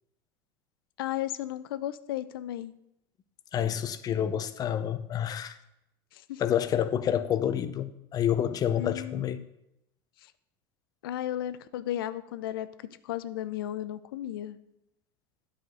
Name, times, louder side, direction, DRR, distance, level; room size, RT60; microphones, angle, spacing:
voice 1, 1.0-2.7 6.1-6.4 8.8-9.4 10.2-10.3 11.0-12.7 13.0-14.6, left 12 dB, 85° left, 14 dB, 0.5 m, -34 dB
voice 2, 3.5-5.6 6.4-9.4, left 9 dB, 35° left, 12 dB, 0.6 m, -28 dB
9.2 x 5.0 x 6.2 m, 0.86 s
supercardioid pair, 115°, 12 cm